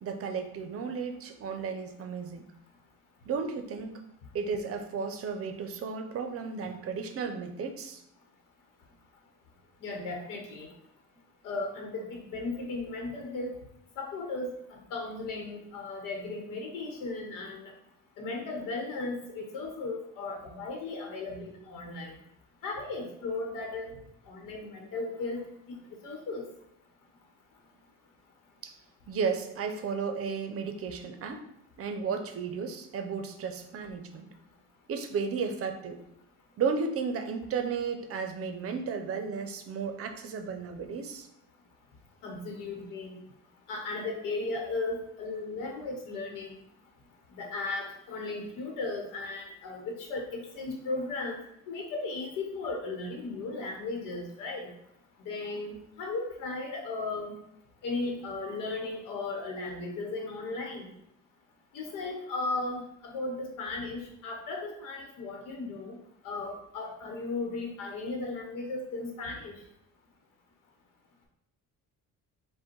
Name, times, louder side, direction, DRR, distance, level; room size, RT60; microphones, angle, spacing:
voice 1, 0.0-2.4 3.3-4.0 4.3-8.0 28.6-28.7 29.1-31.5 31.8-34.3 34.9-36.0 36.6-41.3, right 5 dB, 45° right, 7 dB, 0.6 m, -34 dB
voice 2, 9.8-10.7 11.4-13.5 14.0-17.7 18.2-22.1 22.6-24.0 24.2-25.4 25.7-25.8 26.0-26.4 42.2-43.2 43.7-46.6 47.3-51.4 51.7-54.7 55.2-57.3 57.8-60.9 61.7-66.0 66.2-69.5, left 3 dB, 85° left, 1 dB, 1.0 m, -36 dB
5.0 x 2.2 x 4.4 m, 0.78 s
cardioid pair, 140°, 31 cm